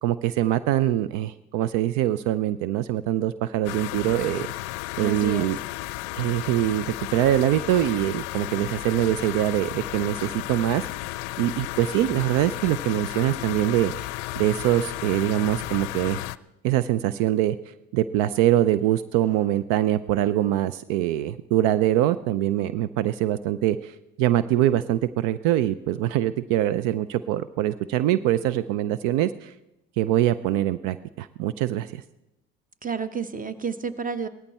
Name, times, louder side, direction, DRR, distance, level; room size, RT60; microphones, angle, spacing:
voice 1, 0.0-4.5 5.0-5.6 6.2-10.9 11.4-14.1 14.4-16.2 16.6-29.5 30.0-32.0, right 13 dB, 70° right, 15 dB, 0.6 m, -23 dB
sound 1, 3.6-16.4, left 19 dB, 80° left, 0.5 m, -33 dB
voice 2, 5.0-5.5 32.8-34.3, right 6 dB, 25° right, 12 dB, 1.1 m, -30 dB
17.5 x 14.0 x 4.3 m, 0.90 s
hypercardioid pair, 65°, 33 cm